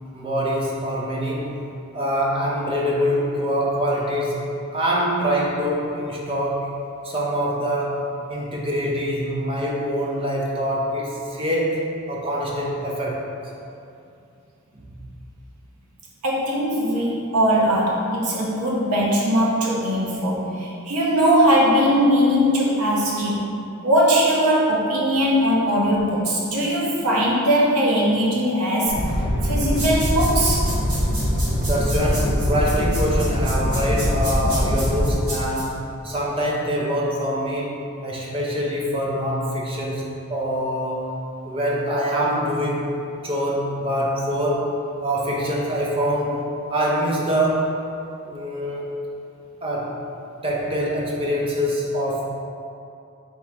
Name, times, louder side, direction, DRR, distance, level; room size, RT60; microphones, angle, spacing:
voice 1, 0.1-1.6 1.9-6.8 7.0-13.2 14.7-15.0 31.5-41.1 41.5-42.9 43.2-46.4 46.7-47.8 48.2-48.9 49.6-50.0 50.4-52.3, equal, 25° right, -3 dB, 0.5 m, -24 dB
voice 2, 16.2-23.4 23.8-29.0 29.4-30.7, equal, 85° right, -4 dB, 0.8 m, -20 dB
sound 1, 28.9-35.1, equal, 50° left, 0.7 m, -23 dB
sound 2, 29.7-35.6, right 1 dB, 65° right, 1.3 m, -32 dB
3.5 x 2.8 x 4.4 m, 2.6 s
head